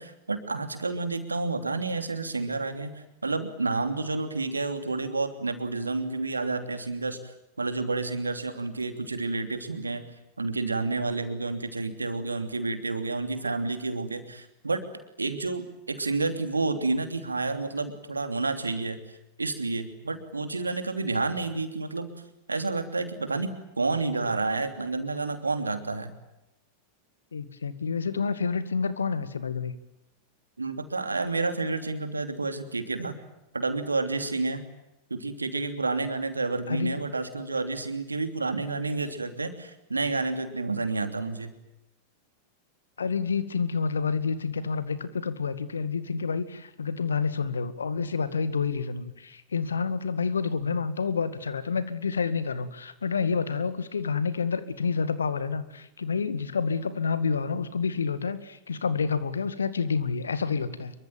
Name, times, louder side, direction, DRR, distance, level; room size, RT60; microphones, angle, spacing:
voice 1, 0.0-10.1 10.4-14.9 15.2-19.0 19.4-22.1 22.5-26.1 30.6-33.1 33.5-34.6 35.1-41.5, right 3 dB, 80° right, 8 dB, 3.0 m, -30 dB
voice 2, 27.3-29.8 36.7-37.0 43.0-60.9, left 5 dB, 70° left, 14 dB, 2.0 m, -29 dB
26.5 x 23.5 x 9.0 m, 0.90 s
figure-of-eight pair, 90°, 0 cm